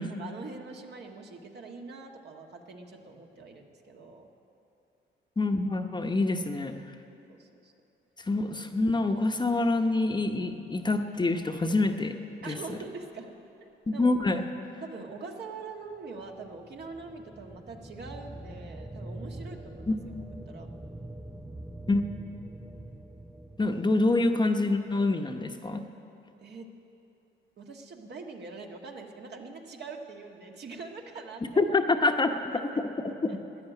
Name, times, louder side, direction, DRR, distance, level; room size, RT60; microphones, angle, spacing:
voice 1, 0.0-4.3 7.3-7.7 12.4-13.3 13.9-14.0 14.8-20.7 26.4-26.7 27.6-31.7 32.5-32.8 33.3-33.4, right 4 dB, 60° right, 2 dB, 1.6 m, -43 dB
voice 2, 5.4-6.7 8.2-12.1 12.5-12.8 13.9-14.4 19.9-20.0 21.9-22.0 23.6-25.8 31.6-32.6 33.0-33.1, left 2 dB, 20° left, 5 dB, 0.9 m, -26 dB
sound 1, 16.0-23.8, right 1 dB, 5° right, 0.5 m, -44 dB
13.0 x 10.0 x 9.1 m, 2.8 s
cardioid pair, 90°, 20 cm